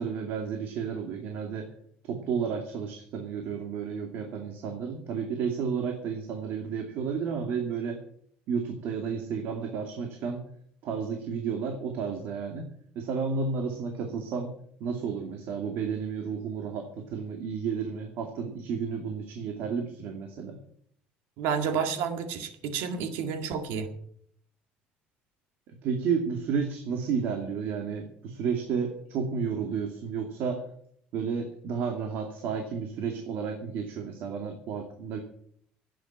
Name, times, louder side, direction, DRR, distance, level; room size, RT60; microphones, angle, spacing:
voice 1, 0.0-1.7 2.0-8.0 8.5-10.4 10.8-12.7 13.0-14.5 14.8-20.6 25.8-30.6 31.1-35.2, right 6 dB, 65° right, 4 dB, 2.4 m, -32 dB
voice 2, 21.4-23.9, right 6 dB, 80° right, 8 dB, 1.9 m, -30 dB
11.5 x 9.4 x 8.9 m, 0.65 s
cardioid pair, 135°, 4 cm